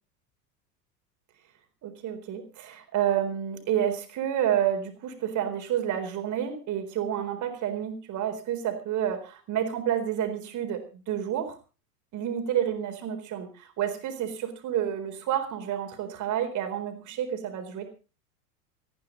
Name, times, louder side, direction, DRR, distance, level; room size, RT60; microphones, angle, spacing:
voice 1, 1.8-11.6 12.1-17.9, right 10 dB, 40° right, 7 dB, 4.2 m, -29 dB
19.5 x 14.0 x 3.9 m, 0.35 s
figure-of-eight pair, 80°, 48 cm